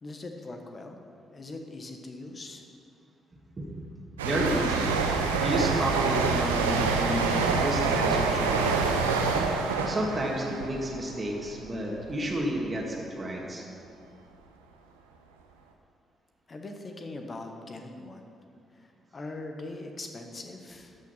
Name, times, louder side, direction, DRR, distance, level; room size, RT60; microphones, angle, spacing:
voice 1, 0.0-1.0 1.3-2.6 16.5-18.3 18.7-21.0, left 2 dB, 35° left, 4 dB, 1.3 m, -41 dB
voice 2, 4.2-5.0 5.4-8.8 9.9-13.6, right 1 dB, 30° right, -2 dB, 2.0 m, -31 dB
sound 1, 4.2-11.7 12.0-12.3, right 4 dB, 85° right, 0.6 m, -26 dB
13.0 x 6.1 x 5.9 m, 2.5 s
figure-of-eight pair, 40°, 0 cm